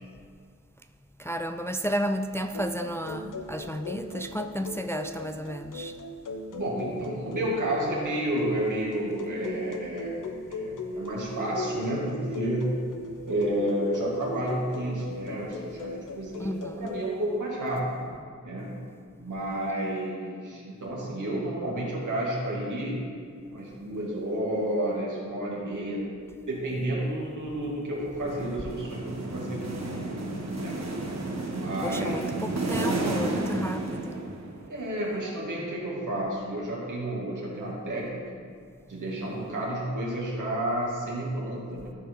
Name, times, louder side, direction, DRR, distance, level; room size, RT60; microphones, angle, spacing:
voice 1, 1.2-6.0 16.4-16.9 31.8-34.2, equal, 10° left, 7 dB, 0.3 m, -32 dB
sound 1, 2.5-17.0, left 2 dB, 85° left, 0.8 m, -38 dB
voice 2, 6.5-10.2 10.5-12.8 13.3-18.1 18.4-18.8 19.2-23.0 23.5-26.0 26.5-30.1 30.6-30.8 31.5-32.5 34.7-38.4 38.9-41.9, right 1 dB, 80° right, -4 dB, 2.4 m, -31 dB
sound 2, 28.2-34.7, right 2 dB, 60° right, 1.3 m, -32 dB
14.0 x 4.7 x 4.7 m, 2.1 s
wide cardioid pair, 70°, 30 cm